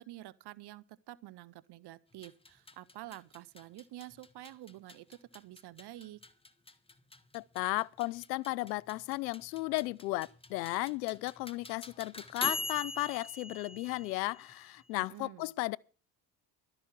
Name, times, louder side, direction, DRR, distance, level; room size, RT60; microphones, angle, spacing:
voice 1, 0.0-6.2 14.9-15.5, right 15 dB, 55° right, 0.8 m, -49 dB
sound 1, 2.1-14.9, left 2 dB, 10° left, 1.3 m, -44 dB
voice 2, 7.3-15.8, left 20 dB, 85° left, 0.5 m, -35 dB
12.5 x 8.0 x 7.1 m
hypercardioid pair, 60°, 49 cm